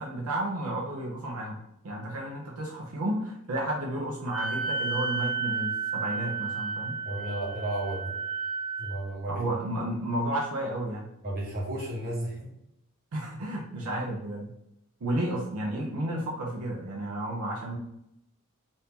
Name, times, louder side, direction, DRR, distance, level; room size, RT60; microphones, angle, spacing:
voice 1, 0.0-1.6 1.8-7.0 9.3-11.1 13.1-14.5 15.0-17.8, right 1 dB, 80° right, -2 dB, 0.6 m, -32 dB
Wind instrument woodwind instrument, 4.3-9.0, right 5 dB, 25° right, 0.8 m, -32 dB
voice 2, 7.0-8.2 8.8-9.4 11.2-12.5, right 1 dB, 45° right, -5 dB, 1.4 m, -33 dB
2.8 x 2.6 x 3.5 m, 0.79 s
head